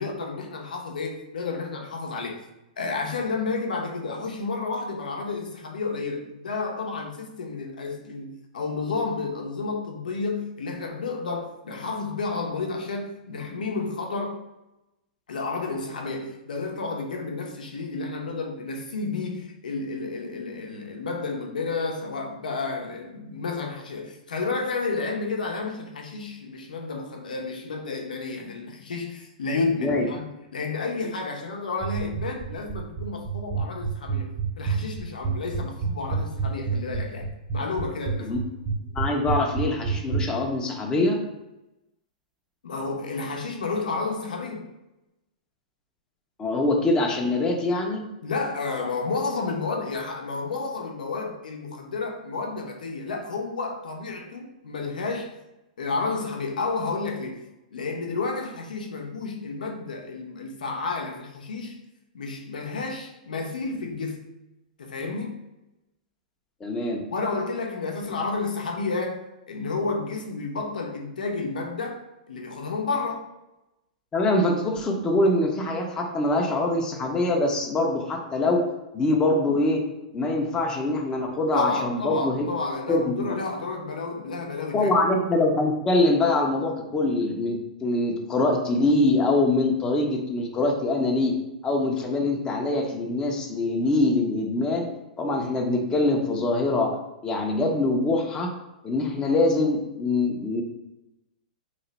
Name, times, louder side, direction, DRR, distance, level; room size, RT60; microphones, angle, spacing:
voice 1, 0.0-2.4 2.8-14.4 15.3-30.3 30.5-38.4 42.6-44.7 48.2-55.3 55.8-57.4 57.7-61.8 62.1-64.2 64.8-65.4 67.1-72.0 72.3-73.2 81.5-84.9, left 4 dB, 85° left, 0.7 m, -31 dB
sound 1, 31.8-40.2, right 6 dB, 30° right, 0.5 m, -27 dB
voice 2, 38.9-41.2 46.4-48.0 66.6-67.0 74.1-78.6 78.9-79.8 80.1-82.5 82.9-83.3 84.7-91.3 91.6-94.9 95.2-98.5 98.8-100.6, left 2 dB, 15° left, 0.6 m, -24 dB
3.1 x 2.1 x 4.0 m
hypercardioid pair, 120°, 4 cm